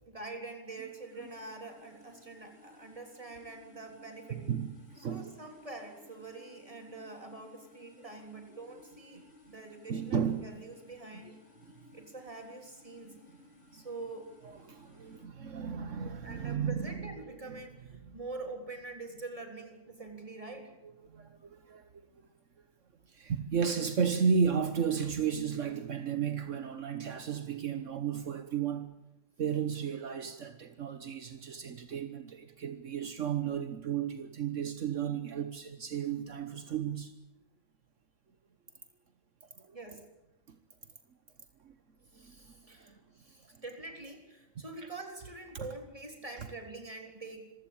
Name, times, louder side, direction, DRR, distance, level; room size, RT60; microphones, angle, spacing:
voice 1, 0.1-4.5 5.0-11.4 11.9-13.2 13.7-14.3 14.7-14.8 16.2-20.7 39.7-40.1 42.1-47.5, right 2 dB, 25° right, 3.7 m, -45 dB
sound 1, 0.6-15.3, left 2 dB, 50° left, 4.2 m, -60 dB
voice 2, 4.3-5.3 9.9-10.4 14.5-17.6 18.1-18.2 21.1-21.9 23.1-28.9 29.4-37.1 39.6-39.8 41.6-41.7 42.2-42.3 42.8-42.9 44.6-44.7 45.5-45.7, right 7 dB, 70° right, 1.5 m, -33 dB
26.0 x 16.0 x 8.8 m
omnidirectional pair, 1.3 m